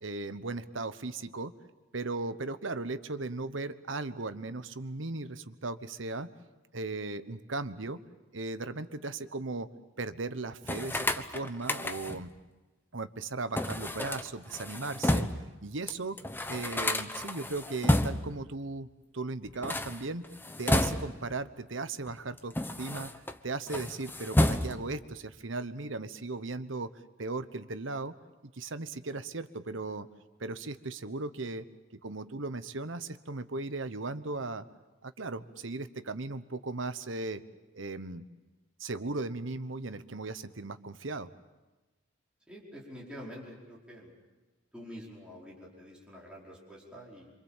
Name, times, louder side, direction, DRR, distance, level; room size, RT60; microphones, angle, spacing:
voice 1, 0.0-1.5 1.9-6.3 6.7-8.0 8.3-9.7 10.0-12.3 12.9-15.3 15.6-16.2 16.5-18.9 19.1-20.3 20.6-26.9 27.2-28.1 28.5-30.1 30.4-31.7 32.0-34.6 35.0-37.4 37.7-38.3 38.8-41.3, right 3 dB, 70° right, 12 dB, 1.1 m, -37 dB
sound 1, 10.6-12.3 13.6-15.5 15.9-16.0 16.2-18.4 19.5-21.3 22.1-23.4 23.7-25.0, left 1 dB, 10° left, 1.0 m, -30 dB
voice 2, 42.5-44.1 44.7-47.3, equal, 5° right, -5 dB, 5.0 m, -47 dB
27.5 x 25.5 x 7.4 m, 1.1 s
head